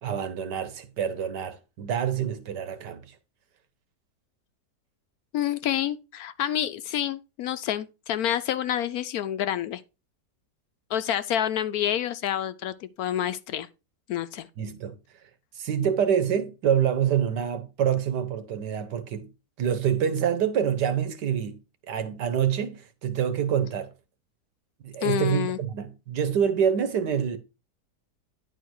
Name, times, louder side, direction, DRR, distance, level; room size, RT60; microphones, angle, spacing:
voice 1, 0.0-3.2 14.6-15.0 15.5-19.3 19.6-21.6 21.9-23.9 24.8-27.4, right 8 dB, 80° right, 1.7 m, -26 dB
voice 2, 5.3-9.8 10.9-13.7 14.1-14.5 25.0-25.6, left 11 dB, 70° left, 1.0 m, -28 dB
10.5 x 4.5 x 4.7 m
omnidirectional pair, 1.8 m